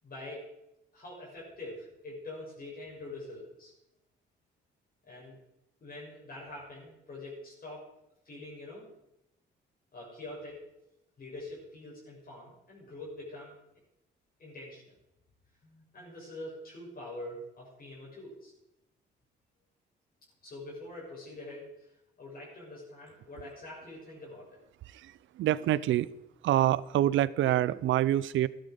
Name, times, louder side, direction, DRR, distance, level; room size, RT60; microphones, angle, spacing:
voice 1, 0.0-0.5 0.9-3.7 5.1-5.4 5.8-7.9 8.2-8.9 9.9-10.6 11.2-13.6 14.4-14.8 15.6-18.5 20.4-21.9 22.2-24.6, left 2 dB, 50° left, -4 dB, 6.5 m, -44 dB
voice 2, 24.9-26.1 26.4-28.5, right 13 dB, 75° right, 20 dB, 0.6 m, -26 dB
13.5 x 11.5 x 5.3 m, 0.85 s
cardioid pair, 90°, 20 cm